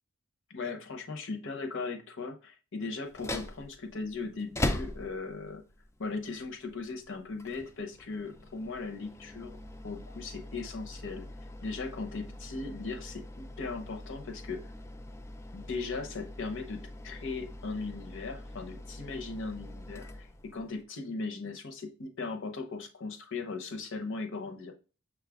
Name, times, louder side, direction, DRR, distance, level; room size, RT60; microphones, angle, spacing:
voice 1, 0.5-5.6 6.0-9.6 9.8-11.3 11.6-14.7 15.5-24.7, left 3 dB, 60° left, 0.7 m, -38 dB
sound 1, 3.0-20.8, left 1 dB, 10° left, 0.3 m, -42 dB
6.4 x 2.4 x 3.4 m
head